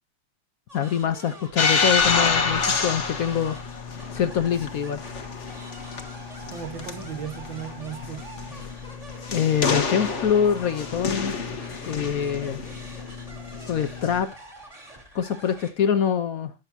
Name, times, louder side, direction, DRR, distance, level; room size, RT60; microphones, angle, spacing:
voice 1, 0.7-3.6 4.1-5.0 9.3-11.3 11.8-12.6 13.7-14.3 15.1-16.5, left 8 dB, 60° left, 1.0 m, -24 dB
sound 1, 0.7-15.7, right 1 dB, 15° right, 2.4 m, -46 dB
sound 2, 1.6-14.2, left 5 dB, 40° left, 1.4 m, -28 dB
voice 2, 6.5-8.7, right 9 dB, 65° right, 2.2 m, -37 dB
18.0 x 6.8 x 2.8 m
omnidirectional pair, 2.3 m